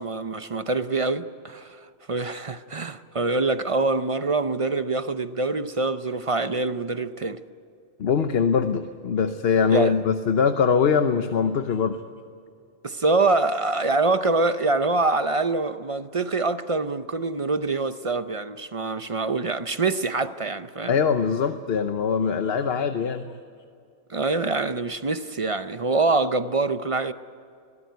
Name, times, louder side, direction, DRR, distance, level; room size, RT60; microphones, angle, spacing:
voice 1, 0.0-1.8 2.1-7.4 9.7-9.9 12.8-21.0 24.1-27.1, right 3 dB, 35° right, 0.6 m, -25 dB
voice 2, 8.0-12.0 20.9-23.2, left 6 dB, 55° left, 1.1 m, -22 dB
23.0 x 17.5 x 9.3 m
omnidirectional pair, 1.3 m